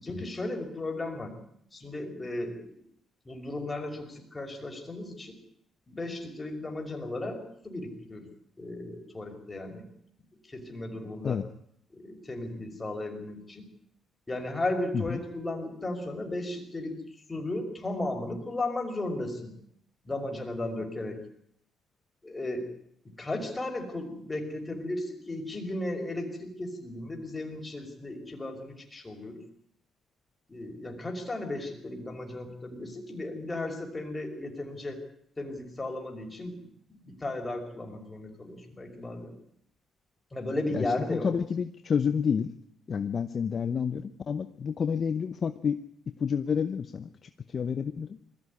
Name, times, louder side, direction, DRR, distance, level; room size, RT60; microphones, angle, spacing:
voice 1, 0.0-1.4 1.7-2.7 3.2-5.4 5.9-8.3 8.6-9.8 10.5-11.4 12.0-13.7 14.3-19.6 20.0-21.2 22.2-22.7 23.2-29.4 30.5-35.0 35.4-39.3 40.3-41.4, left 2 dB, 20° left, 3 dB, 5.7 m, -35 dB
voice 2, 41.1-42.5 42.9-45.8 46.1-48.2, left 6 dB, 45° left, 10 dB, 0.9 m, -29 dB
21.0 x 15.0 x 9.9 m, 0.71 s
cardioid pair, 90°, 0 cm